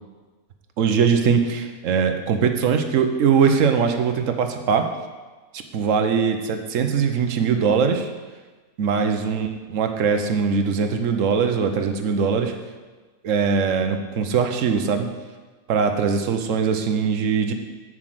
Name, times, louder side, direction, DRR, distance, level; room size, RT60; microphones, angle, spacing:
voice 1, 0.8-4.9 5.5-8.1 8.8-12.5 13.2-15.1 15.7-17.5, right 6 dB, 65° right, 6 dB, 1.2 m, -21 dB
7.4 x 6.3 x 7.8 m, 1.3 s
omnidirectional pair, 1.5 m